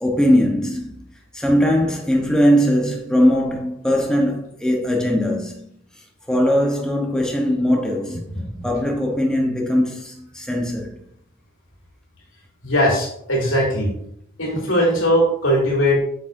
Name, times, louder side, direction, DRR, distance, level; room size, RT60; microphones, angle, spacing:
voice 1, 0.0-0.9 1.3-5.7 6.3-8.2 8.6-10.9, equal, 5° left, 0.9 m, -20 dB
voice 2, 8.3-8.7 12.6-13.9 14.4-16.0, equal, 80° left, 2.7 m, -19 dB
8.2 x 6.1 x 2.6 m
head